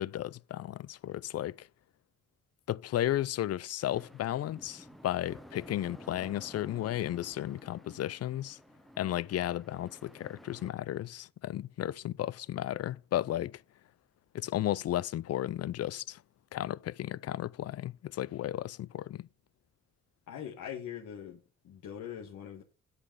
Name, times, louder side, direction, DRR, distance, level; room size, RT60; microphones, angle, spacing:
voice 1, 0.0-1.7 2.7-8.6 9.0-13.6 14.3-16.2 16.5-19.3, left 13 dB, 55° left, 0.5 m, -34 dB
sound 1, 3.8-10.7, equal, ahead, 1.0 m, -53 dB
voice 2, 20.3-22.6, left 9 dB, 75° left, 1.7 m, -42 dB
8.4 x 8.1 x 5.5 m
cardioid pair, 90°, 30 cm